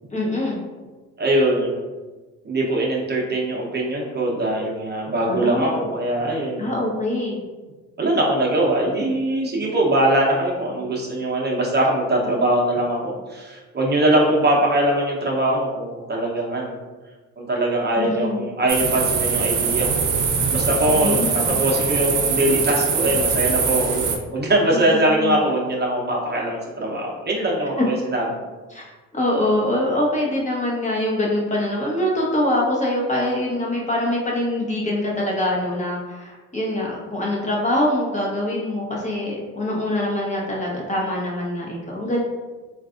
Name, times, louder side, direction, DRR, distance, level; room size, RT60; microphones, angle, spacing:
voice 1, 0.1-0.6 5.3-5.8 6.6-7.4 18.0-18.4 20.9-21.5 24.7-25.4 28.7-42.2, left 1 dB, 25° left, -4 dB, 0.9 m, -24 dB
voice 2, 1.2-1.8 2.4-6.7 8.0-16.8 17.4-20.0 20.5-28.2, right 1 dB, 35° right, -3 dB, 0.8 m, -22 dB
sound 1, 18.7-24.2, right 5 dB, 85° right, 0.6 m, -22 dB
3.9 x 2.5 x 2.4 m, 1.3 s
cardioid pair, 90°, 30 cm